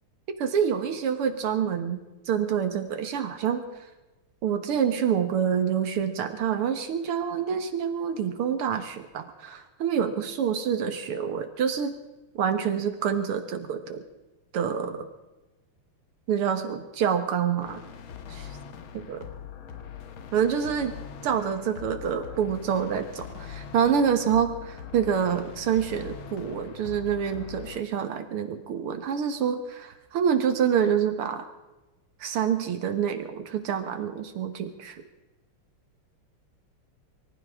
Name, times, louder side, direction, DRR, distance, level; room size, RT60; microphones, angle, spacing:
voice 1, 0.4-2.0 2.3-3.6 4.4-11.9 12.4-14.0 14.5-15.1 16.3-17.8 18.3-18.6 18.9-19.2 20.3-20.9 21.2-31.5 32.2-35.0, right 8 dB, 85° right, 8 dB, 2.2 m, -27 dB
sound 1, 17.6-27.8, left 8 dB, 70° left, 2.0 m, -42 dB
24.5 x 14.5 x 3.6 m, 1.1 s
omnidirectional pair, 2.4 m